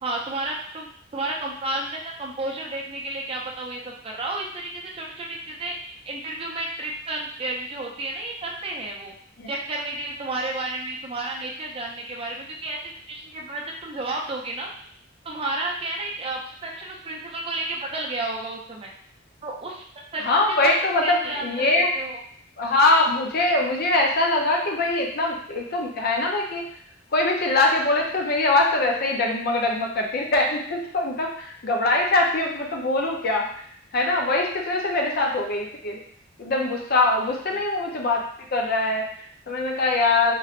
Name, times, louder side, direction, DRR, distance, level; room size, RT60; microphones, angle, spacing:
voice 1, 0.0-5.7 6.1-9.1 9.5-12.8 13.1-14.7 15.2-18.9 19.4-19.8 20.1-20.3 20.6-20.8 21.0-22.2 37.3-37.4, right 2 dB, 30° right, -1 dB, 0.5 m, -31 dB
voice 2, 20.2-21.9 22.6-26.7 27.1-33.5 33.9-36.0 36.4-40.3, left 2 dB, 50° left, 0 dB, 0.6 m, -23 dB
3.0 x 2.9 x 2.4 m, 0.62 s
head